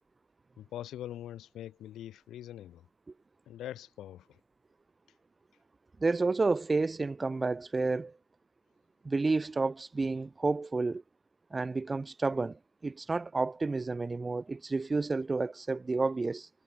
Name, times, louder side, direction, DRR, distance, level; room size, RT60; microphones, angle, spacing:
voice 1, 0.6-2.9 3.5-4.3, left 12 dB, 90° left, 7.3 m, -43 dB
voice 2, 6.0-8.1 9.0-11.0 11.5-16.5, right 3 dB, 25° right, 0.5 m, -30 dB
cardioid pair, 105°, 0 cm